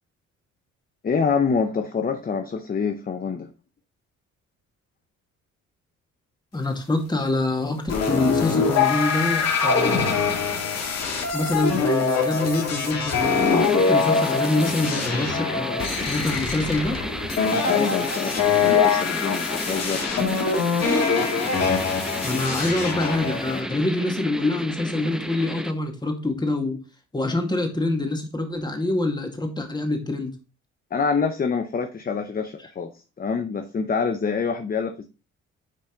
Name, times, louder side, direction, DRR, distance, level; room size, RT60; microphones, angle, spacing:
voice 1, 1.0-3.5 17.6-20.1 30.9-32.9 33.2-35.1, left 5 dB, 30° left, 7 dB, 0.8 m, -26 dB
voice 2, 6.5-10.1 11.3-17.0 22.2-26.8 27.1-30.3, left 2 dB, 15° left, 3 dB, 2.0 m, -25 dB
sound 1, 7.9-23.6, left 5 dB, 55° left, 2.2 m, -23 dB
sound 2, 13.6-25.7, equal, ahead, 0.5 m, -33 dB
10.0 x 4.1 x 3.9 m, 0.31 s
cardioid pair, 90°, 30 cm